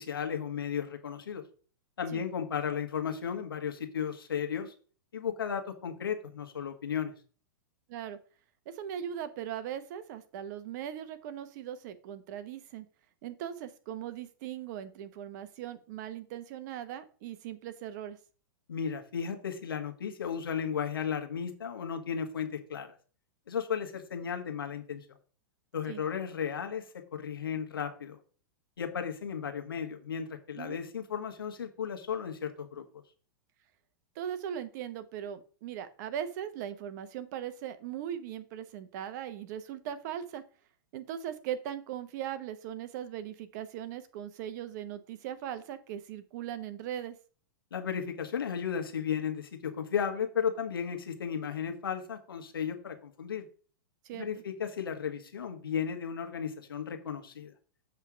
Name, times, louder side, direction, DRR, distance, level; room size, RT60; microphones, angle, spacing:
voice 1, 0.0-1.4 2.0-4.7 5.1-7.1 18.7-22.9 23.5-25.0 25.7-26.8 27.1-28.2 28.8-32.8 47.7-53.5 54.1-57.5, left 7 dB, 90° left, 5 dB, 1.5 m, -34 dB
voice 2, 8.7-12.9 13.2-18.2 25.9-26.0 30.5-30.8 34.1-40.4 40.9-47.1 54.0-54.3, right 10 dB, 55° right, 12 dB, 1.0 m, -39 dB
7.3 x 3.4 x 6.2 m, 0.40 s
hypercardioid pair, 120°, 12 cm